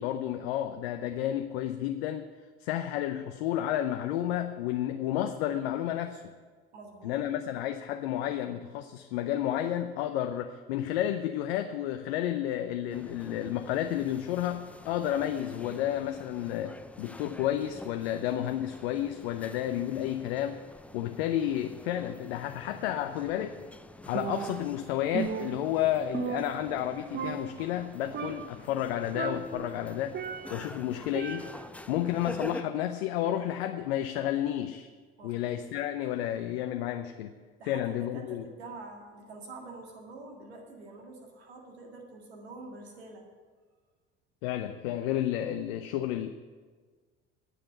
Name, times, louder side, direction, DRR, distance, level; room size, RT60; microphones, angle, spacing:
voice 1, 0.0-2.3 2.6-6.2 7.0-20.6 20.9-23.6 24.1-30.2 30.5-31.5 31.9-34.9 35.2-37.3 37.7-38.5 44.4-46.3, left 11 dB, 75° left, 7 dB, 0.7 m, -31 dB
voice 2, 6.7-7.2 30.7-31.1 31.7-31.9 35.2-35.6 37.6-43.3, right 3 dB, 90° right, 1 dB, 2.0 m, -47 dB
sound 1, 12.9-32.6, left 1 dB, 5° left, 0.5 m, -47 dB
Percussion, 24.1-24.8 25.1-26.9 27.1-27.8 28.1-28.7 29.1-30.7 31.1-31.8, right 7 dB, 35° right, 0.8 m, -36 dB
9.8 x 6.7 x 8.8 m, 1.5 s
hypercardioid pair, 70°, 31 cm